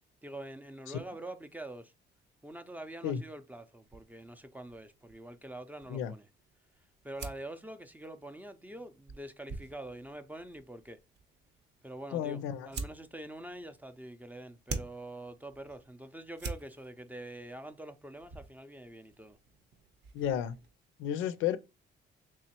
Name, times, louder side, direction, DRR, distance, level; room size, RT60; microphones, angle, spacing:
voice 1, 0.2-1.9 2.4-6.3 7.0-11.0 11.8-19.4, right 1 dB, 10° right, 0.4 m, -45 dB
sound 1, 3.9-20.7, right 4 dB, 60° right, 0.8 m, -48 dB
voice 2, 12.1-12.7 20.1-20.6 21.0-21.6, left 10 dB, 90° left, 0.4 m, -32 dB
3.6 x 3.0 x 2.8 m
cardioid pair, 90°, 20 cm